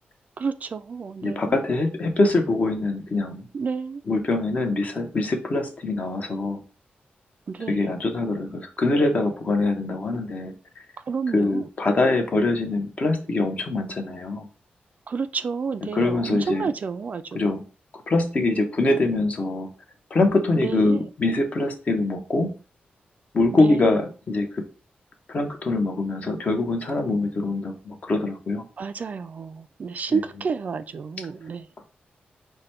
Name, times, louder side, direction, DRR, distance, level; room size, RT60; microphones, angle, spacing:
voice 1, 0.4-1.6 3.5-4.0 7.5-7.9 11.1-11.7 15.1-17.4 20.6-21.1 23.6-24.0 28.8-31.7, right 5 dB, 45° right, 0.3 m, -30 dB
voice 2, 1.2-3.5 4.1-6.6 7.7-10.5 11.3-14.5 15.9-16.7 17.3-17.6 17.9-19.7 20.1-22.5 23.3-24.6 25.3-28.6 30.1-30.2, left 2 dB, 45° left, 0.9 m, -23 dB
4.9 x 2.2 x 4.3 m
wide cardioid pair, 125°, 4 cm